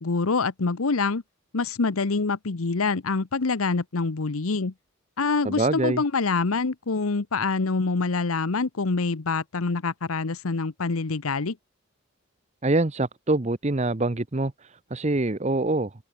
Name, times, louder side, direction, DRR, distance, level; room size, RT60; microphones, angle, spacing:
voice 1, 0.0-1.2 1.5-4.7 5.2-11.6, left 4 dB, 85° left, 0.9 m, -25 dB
voice 2, 5.4-6.0 12.6-15.9, right 2 dB, 30° right, 0.8 m, -25 dB
head